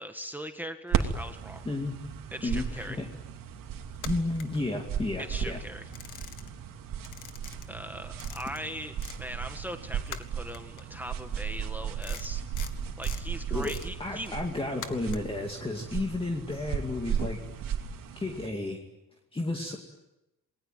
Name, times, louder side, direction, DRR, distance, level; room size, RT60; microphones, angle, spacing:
voice 1, 0.0-1.6 2.3-3.0 5.2-5.9 7.7-12.4 13.0-14.3, equal, 5° right, 6 dB, 1.5 m, -40 dB
sound 1, 0.9-18.5, right 8 dB, 80° right, 2.8 m, -35 dB
voice 2, 2.4-3.1 4.0-5.6 13.5-13.7 14.0-17.4 18.2-18.8 19.3-19.8, left 2 dB, 15° left, 2 dB, 2.4 m, -32 dB
sound 2, 3.9-5.2 5.6-6.7 7.0-9.2 9.5-15.4, left 9 dB, 65° left, 2.1 m, -45 dB
28.5 x 21.0 x 9.3 m, 0.95 s
cardioid pair, 155°, 33 cm